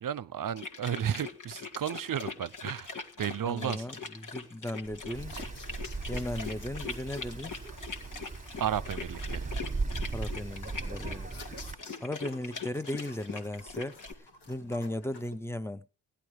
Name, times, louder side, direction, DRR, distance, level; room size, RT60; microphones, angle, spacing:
voice 1, 0.0-3.8 8.6-9.5, right 9 dB, 55° right, 0.7 m, -33 dB
sound 1, 0.6-14.1, left 4 dB, 50° left, 2.0 m, -42 dB
voice 2, 3.4-5.4 6.1-7.6 10.1-11.3 12.0-14.0 14.5-15.9, left 1 dB, 5° left, 0.8 m, -36 dB
sound 2, 4.8-15.4, left 2 dB, 80° left, 3.4 m, -51 dB
Wind, 5.1-11.7, right 3 dB, 20° right, 1.7 m, -38 dB
16.0 x 11.5 x 4.8 m
cardioid pair, 80°, 40 cm